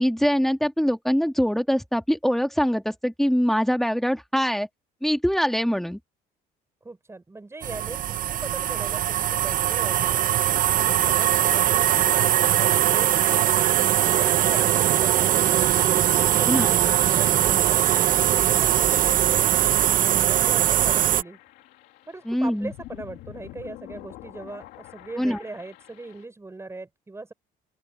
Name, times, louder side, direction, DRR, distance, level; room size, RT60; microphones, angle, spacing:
voice 1, 0.0-4.7 5.0-6.0 16.5-16.7 22.3-22.7 25.2-25.4, equal, ahead, 1.9 m, -23 dB
voice 2, 6.8-10.3 10.8-13.2 14.1-19.5 19.9-21.4 22.1-27.3, right 3 dB, 15° right, 6.2 m, -39 dB
sound 1, 7.6-21.2, right 12 dB, 55° right, 0.9 m, -21 dB
sound 2, 19.8-26.3, left 16 dB, 90° left, 2.6 m, -46 dB
open air
cardioid pair, 110°, 17 cm